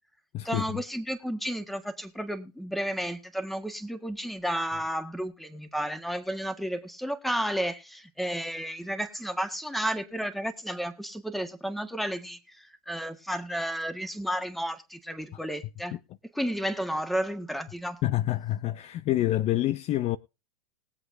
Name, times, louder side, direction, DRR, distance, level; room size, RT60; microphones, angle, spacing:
voice 1, 0.4-16.0 16.3-18.0, equal, ahead, 1.6 m, -32 dB
voice 2, 18.0-20.2, left 14 dB, 35° left, 0.6 m, -27 dB
21.0 x 7.8 x 2.7 m
hypercardioid pair, 105°, 20 cm